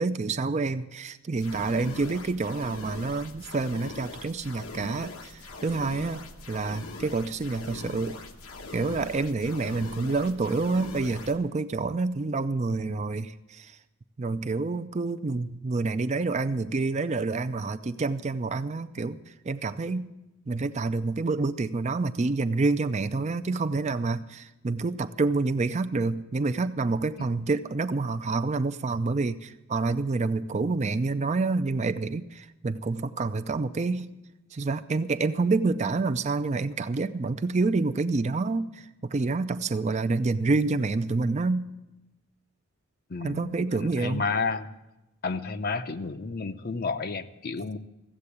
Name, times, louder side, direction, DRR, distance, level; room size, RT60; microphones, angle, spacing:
voice 1, 0.0-8.2 8.7-13.8 14.2-19.2 19.4-20.0 20.5-34.1 34.5-41.6 43.2-44.2, right 3 dB, 30° right, 10 dB, 0.4 m, -28 dB
sound 1, 1.4-11.4, left 3 dB, 85° left, 1.2 m, -42 dB
voice 2, 43.1-44.7 45.2-47.8, left 4 dB, 45° left, 10 dB, 0.6 m, -31 dB
15.0 x 7.7 x 8.3 m, 0.97 s
head